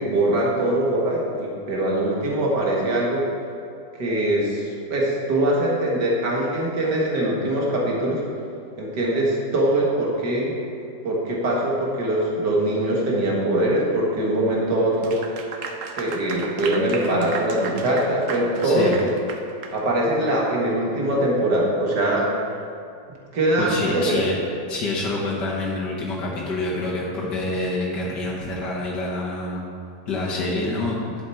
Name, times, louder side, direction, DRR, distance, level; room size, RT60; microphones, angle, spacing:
voice 1, 0.0-3.3 4.0-8.2 8.8-10.5 11.0-15.2 16.0-19.1 19.7-22.3 23.3-24.2, right 1 dB, 80° right, -3 dB, 2.4 m, -22 dB
Clapping / Applause, 14.9-19.8, right 4 dB, 55° right, 1.1 m, -34 dB
voice 2, 18.6-18.9 23.6-24.4 24.7-29.6 30.1-31.0, left 2 dB, 80° left, -5 dB, 1.9 m, -26 dB
11.0 x 7.8 x 4.5 m, 2.5 s
omnidirectional pair, 1.8 m